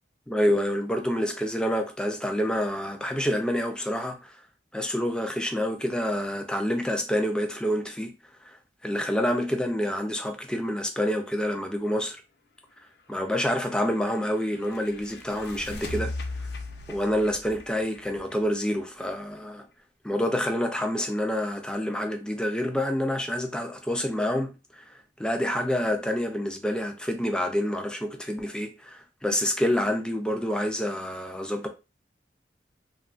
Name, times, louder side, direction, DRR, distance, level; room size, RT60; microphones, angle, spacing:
voice 1, 0.3-4.4 4.7-8.1 8.4-8.6 8.8-12.2 13.1-16.1 16.9-19.7 20.0-31.7, equal, 5° left, 0.3 m, -27 dB
sound 1, 13.3-19.0, left 2 dB, 65° left, 0.5 m, -39 dB
2.7 x 2.3 x 2.4 m
head